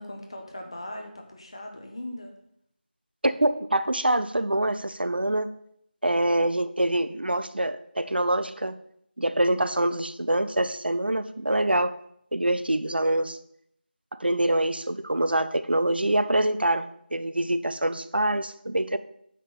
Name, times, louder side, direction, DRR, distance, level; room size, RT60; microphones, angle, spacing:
voice 1, 0.0-2.3 6.0-6.2, left 1 dB, 30° left, 3 dB, 1.2 m, -39 dB
voice 2, 3.2-5.5 6.0-8.7 9.2-11.9 12.3-13.4 14.2-19.0, right 1 dB, 65° right, 12 dB, 0.7 m, -25 dB
9.9 x 5.1 x 5.7 m, 0.71 s
figure-of-eight pair, 175°, 6 cm